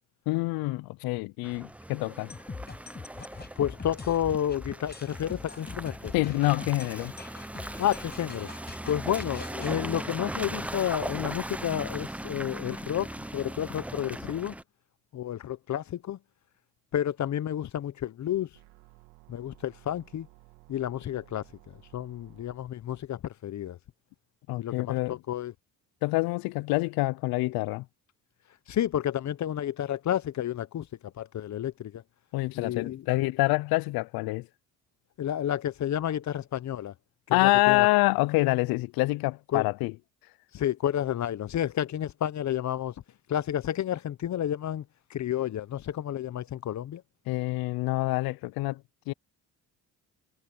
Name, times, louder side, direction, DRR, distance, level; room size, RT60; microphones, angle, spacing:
voice 1, 0.3-2.3 6.1-7.1 24.5-25.2 26.0-27.9 32.3-34.5 37.3-39.9 47.3-49.1, left 21 dB, 80° left, 0.6 m, -26 dB
Car passing by / Engine, 1.4-14.6, right 1 dB, 5° right, 0.8 m, -39 dB
sound 1, 2.3-9.8, left 4 dB, 25° left, 5.6 m, -43 dB
voice 2, 3.6-6.1 7.8-8.5 8.8-13.1 13.3-14.5 15.1-16.2 16.9-18.5 19.3-20.3 20.7-21.4 21.9-23.8 24.6-25.5 28.7-30.9 31.2-32.0 32.5-33.0 35.2-36.9 37.3-37.9 39.5-39.7 40.5-42.9 43.3-44.8 45.1-47.0, left 11 dB, 50° left, 0.9 m, -30 dB
sound 2, 18.5-22.6, right 19 dB, 90° right, 2.4 m, -56 dB
supercardioid pair, 75°, 36 cm